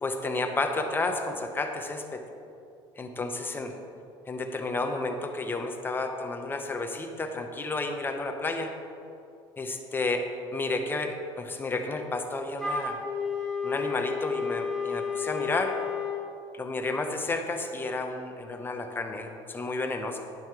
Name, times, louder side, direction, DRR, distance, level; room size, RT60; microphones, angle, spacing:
voice 1, 0.0-2.2 3.0-3.7 4.3-8.7 9.6-13.0 13.6-15.8 16.5-20.2, left 2 dB, 20° left, 4 dB, 0.9 m, -31 dB
Wind instrument woodwind instrument, 12.6-16.2, left 5 dB, ahead, 2.0 m, -31 dB
11.0 x 5.4 x 4.8 m, 2.6 s
cardioid pair, 120°, 11 cm